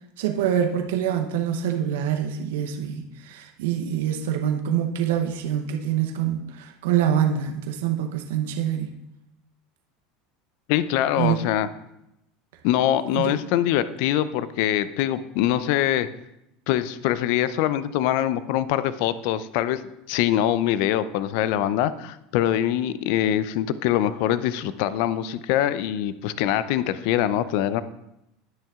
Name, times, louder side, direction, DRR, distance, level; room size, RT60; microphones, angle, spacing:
voice 1, 0.2-9.0 11.2-11.4 13.1-13.4, right 9 dB, 75° right, 4 dB, 0.8 m, -25 dB
voice 2, 10.7-11.7 12.6-16.1 16.7-27.8, left 12 dB, 65° left, 15 dB, 0.5 m, -23 dB
19.0 x 6.4 x 2.4 m, 0.85 s
hypercardioid pair, 80°, 0 cm